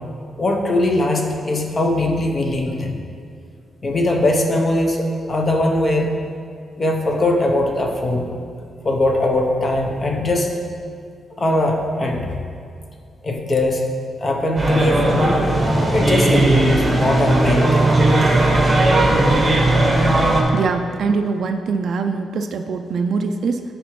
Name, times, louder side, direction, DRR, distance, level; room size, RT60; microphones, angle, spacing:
voice 1, 0.3-3.0 3.8-6.2 6.8-8.3 8.8-10.5 11.4-12.3 13.2-13.8 14.2-15.4 15.9-17.9, left 1 dB, 30° left, 1 dB, 0.7 m, -20 dB
sound 1, 14.6-20.4, right 2 dB, 20° right, 1.0 m, -17 dB
voice 2, 20.5-23.6, right 4 dB, 60° right, 6 dB, 0.3 m, -23 dB
10.0 x 4.9 x 3.1 m, 2.3 s
wide cardioid pair, 150°, 0 cm